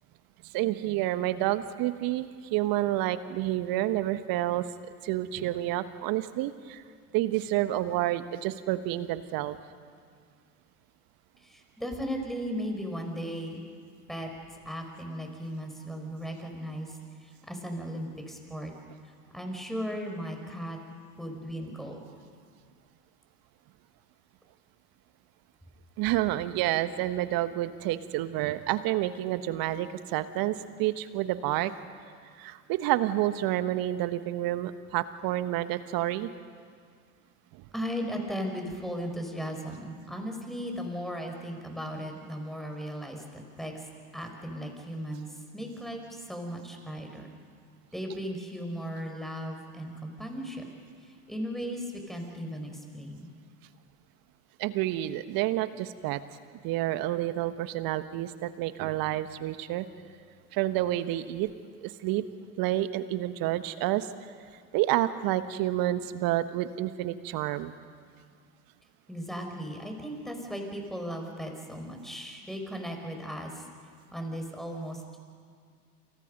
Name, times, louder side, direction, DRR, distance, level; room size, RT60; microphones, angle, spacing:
voice 1, 0.5-4.7 5.0-6.8 7.1-9.6 26.0-31.7 32.4-36.3 54.6-56.2 56.6-59.8 60.5-61.5 61.8-62.2 62.6-64.1 64.7-67.7, right 14 dB, 50° right, 11 dB, 1.5 m, -29 dB
voice 2, 11.4-13.6 14.1-14.3 14.7-18.7 19.3-20.8 21.2-22.0 37.7-43.8 44.1-45.3 45.5-47.3 47.9-50.6 51.0-53.3 69.1-73.6 74.1-75.2, equal, ahead, 3 dB, 5.7 m, -36 dB
29.0 x 28.5 x 5.4 m, 2.1 s
hypercardioid pair, 75°, 44 cm